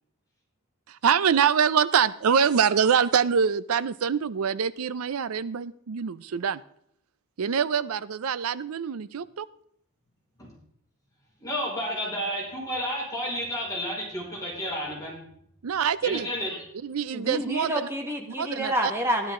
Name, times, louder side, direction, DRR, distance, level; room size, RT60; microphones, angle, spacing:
voice 1, 0.9-6.6 7.4-9.5 15.6-16.3 16.8-17.7 18.4-18.9, right 7 dB, 85° right, 17 dB, 0.5 m, -25 dB
voice 2, 11.4-15.2 16.0-16.6, equal, 15° left, -5 dB, 5.0 m, -31 dB
voice 3, 17.1-19.3, equal, 10° right, 2 dB, 1.6 m, -28 dB
12.5 x 11.5 x 3.7 m, 0.67 s
head